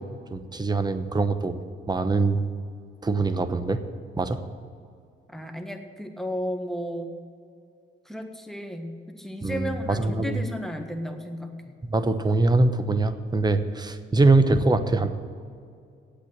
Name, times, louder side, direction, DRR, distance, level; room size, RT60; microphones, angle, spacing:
voice 1, 0.3-1.6 1.9-2.4 3.0-3.8 4.2-4.4 9.4-10.4 11.8-15.1, right 3 dB, 20° right, 10 dB, 0.9 m, -23 dB
voice 2, 5.3-7.1 8.0-11.8, equal, ahead, 4 dB, 1.4 m, -34 dB
8.4 x 8.4 x 9.1 m, 2.3 s
cardioid pair, 90°, 20 cm